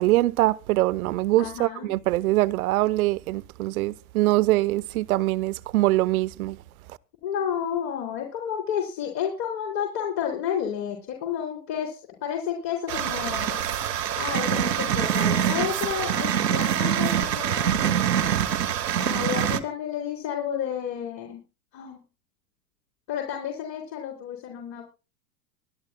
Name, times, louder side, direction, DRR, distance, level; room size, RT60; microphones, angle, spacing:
voice 1, 0.0-6.6, right 17 dB, 60° right, 0.9 m, -23 dB
voice 2, 1.4-2.0 7.2-13.6 14.2-17.8 18.9-21.4 21.7-22.0 23.1-24.9, left 9 dB, 45° left, 4.1 m, -31 dB
sound 1, 12.9-19.6, right 9 dB, 80° right, 1.5 m, -25 dB
24.0 x 10.5 x 2.2 m
hypercardioid pair, 110°, 48 cm